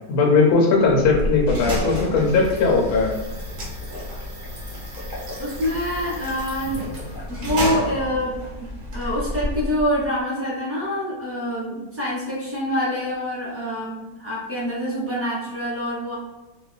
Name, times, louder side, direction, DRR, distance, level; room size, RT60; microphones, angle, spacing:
voice 1, 0.1-3.1, left 4 dB, 85° left, 0 dB, 1.1 m, -18 dB
sound 1, 0.8-10.1, left 1 dB, 45° right, 0.8 m, -31 dB
voice 2, 5.4-6.8 7.3-8.3 8.6-16.2, equal, 20° right, -8 dB, 0.4 m, -26 dB
2.7 x 2.1 x 2.4 m, 1.1 s
omnidirectional pair, 1.6 m